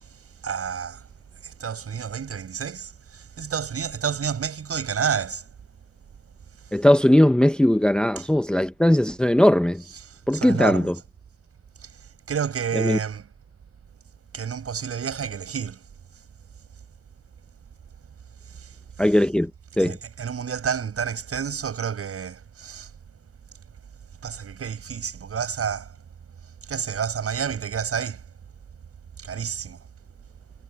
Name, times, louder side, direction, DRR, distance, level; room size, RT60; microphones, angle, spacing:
voice 1, 0.4-1.1 1.4-5.4 8.2-8.3 10.0-10.9 11.8-13.3 14.3-15.8 18.5-19.1 19.8-22.9 24.2-26.0 26.6-28.2 29.2-29.8, right 7 dB, 50° right, 7.5 m, -30 dB
voice 2, 6.7-9.8 10.3-10.9 12.8-13.0 19.0-19.5 19.8-20.0, left 1 dB, 5° left, 0.9 m, -19 dB
cardioid pair, 90°, 30 cm